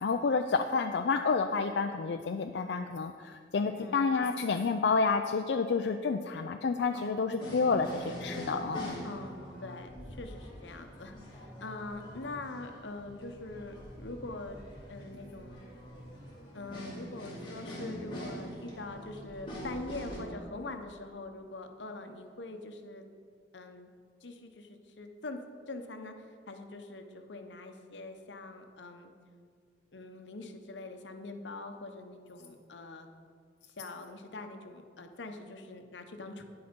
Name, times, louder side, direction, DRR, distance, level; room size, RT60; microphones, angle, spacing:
voice 1, 0.0-8.9, left 4 dB, 70° left, 5 dB, 0.4 m, -29 dB
voice 2, 6.9-7.4 9.0-14.6 14.9-15.7 16.5-23.1 23.5-23.9 24.2-25.4 25.7-29.1 29.9-33.1 33.8-36.4, left 2 dB, 90° left, 6 dB, 0.9 m, -43 dB
sound 1, 7.4-20.2, equal, 30° left, 2.7 m, -44 dB
9.9 x 7.8 x 5.2 m, 2.1 s
head